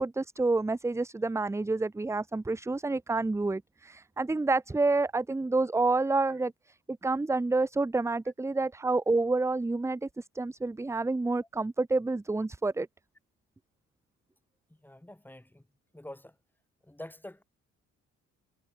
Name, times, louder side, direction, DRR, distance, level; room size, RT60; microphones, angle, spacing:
voice 1, 0.0-6.5 6.9-12.9, right 3 dB, 10° right, 0.5 m, -28 dB
voice 2, 14.7-15.6 15.9-16.3 16.8-17.4, left 1 dB, 5° left, 2.9 m, -46 dB
cardioid pair, 90°, 30 cm